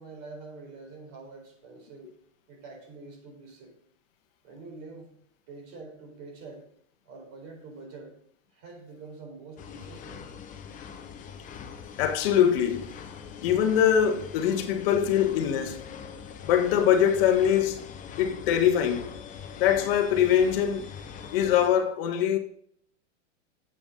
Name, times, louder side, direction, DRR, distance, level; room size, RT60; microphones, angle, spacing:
voice 1, 0.0-2.1 2.5-3.7 4.4-5.1 5.5-6.7 7.0-8.1 8.5-10.3, right 3 dB, 40° right, 4.2 m, -45 dB
sound 1, 9.6-21.7, left 7 dB, 20° left, 0.9 m, -42 dB
voice 2, 12.0-12.9 13.4-15.8 16.5-17.9 18.2-19.1 19.6-20.9 21.3-22.4, left 9 dB, 50° left, 1.2 m, -23 dB
10.5 x 7.9 x 3.8 m
hypercardioid pair, 140°, 38 cm